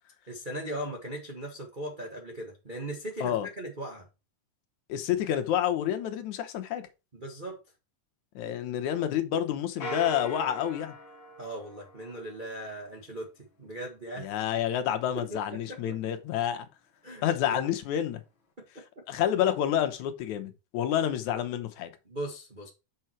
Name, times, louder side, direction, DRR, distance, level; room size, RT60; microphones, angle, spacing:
voice 1, 0.3-4.1 7.1-7.6 11.4-14.3 15.1-15.4 15.7-16.0 17.0-17.6 18.6-19.0 22.1-22.7, right 1 dB, 25° right, 1.0 m, -39 dB
voice 2, 4.9-6.8 8.4-11.0 14.2-16.7 17.2-18.2 19.1-21.9, left 10 dB, 75° left, 2.3 m, -29 dB
sound 1, 9.8-12.5, right 1 dB, 45° left, 2.2 m, -40 dB
6.7 x 6.2 x 4.4 m
omnidirectional pair, 3.6 m